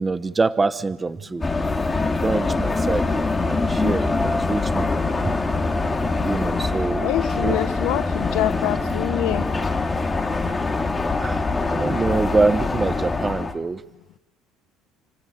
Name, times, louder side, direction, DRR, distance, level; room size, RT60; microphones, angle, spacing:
voice 1, 0.0-1.5 2.0-4.9 5.2-5.3 6.2-7.1 7.4-7.6 11.2-13.8, right 3 dB, 15° right, 1.0 m, -25 dB
sound 1, 1.4-13.5, left 3 dB, 15° left, 2.5 m, -24 dB
voice 2, 7.0-9.5, left 15 dB, 75° left, 1.2 m, -25 dB
30.0 x 16.0 x 8.8 m
cardioid pair, 145°, 0 cm